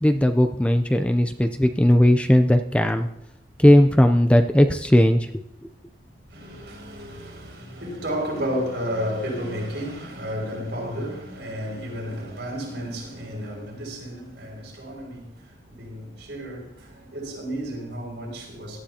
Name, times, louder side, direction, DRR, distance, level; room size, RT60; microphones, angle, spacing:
voice 1, 0.0-3.1 3.6-5.3, left 1 dB, 5° left, 0.5 m, -17 dB
voice 2, 6.3-18.8, equal, 65° right, 5.8 m, -32 dB
17.5 x 12.5 x 2.9 m
head